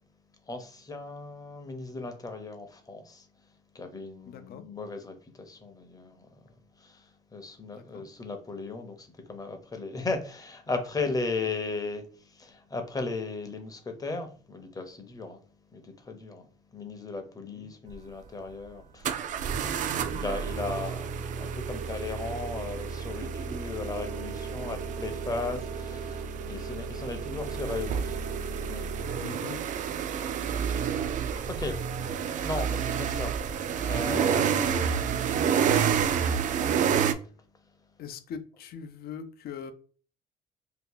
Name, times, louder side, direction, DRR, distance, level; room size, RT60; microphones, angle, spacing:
voice 1, 0.5-3.2 3.7-6.3 6.8-12.0 12.3-15.4 15.7-16.5 16.7-19.3 20.1-28.2 28.7-28.9 30.2-30.8 31.5-31.8 32.4-33.4 33.7-36.0, left 3 dB, 20° left, 0.7 m, -36 dB
voice 2, 4.2-4.6 7.7-8.1 17.4-17.7 29.2-29.6 30.8-30.9 38.0-39.7, left 7 dB, 65° left, 0.5 m, -41 dB
sound 1, 17.9-18.0 19.0-37.1, right 7 dB, 50° right, 0.4 m, -29 dB
2.8 x 2.3 x 3.8 m
cardioid pair, 110°, 17 cm